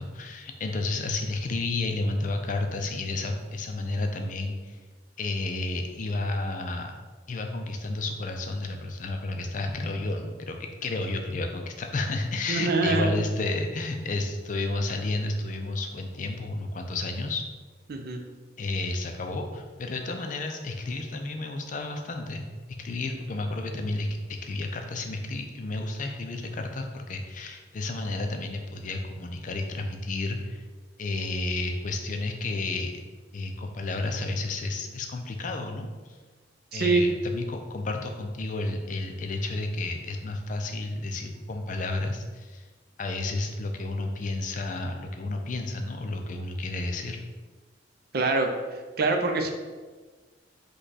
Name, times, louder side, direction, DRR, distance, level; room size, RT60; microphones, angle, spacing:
voice 1, 0.0-4.8 5.2-6.9 7.3-17.4 18.6-22.5 22.8-30.6 31.0-32.9 33.3-36.2 36.7-42.6 43.0-47.2, left 2 dB, 45° left, 4 dB, 0.4 m, -31 dB
voice 2, 12.5-13.2 17.9-18.2 36.7-37.0 48.1-48.5 49.0-49.5, right 3 dB, 55° right, 4 dB, 0.5 m, -24 dB
5.2 x 2.3 x 4.0 m, 1.4 s
head